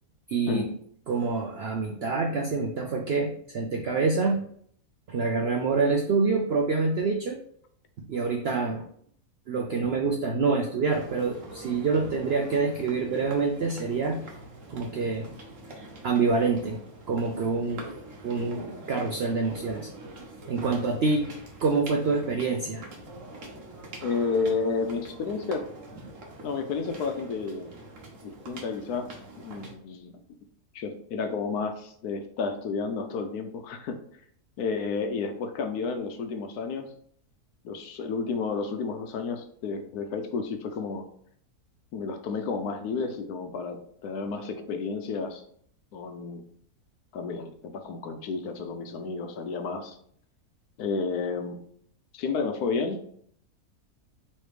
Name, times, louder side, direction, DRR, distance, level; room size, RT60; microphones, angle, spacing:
voice 1, 0.3-0.6 1.1-4.4 5.1-7.4 8.1-8.8 9.5-14.2 14.7-15.3 16.0-16.8 17.1-18.0 18.2-19.9 20.5-21.3 21.6-22.8, right 4 dB, 80° right, 2 dB, 0.5 m, -26 dB
sound 1, 10.9-29.8, right 2 dB, 55° right, 1.3 m, -44 dB
voice 2, 24.0-25.7 26.4-27.8 28.2-29.1 29.4-30.2 30.7-34.0 34.6-36.9 37.6-41.0 41.9-45.4 45.9-46.4 47.1-50.0 50.8-51.6 52.1-53.0, left 4 dB, 80° left, 6 dB, 1.1 m, -31 dB
3.3 x 3.2 x 4.7 m, 0.62 s
omnidirectional pair, 1.7 m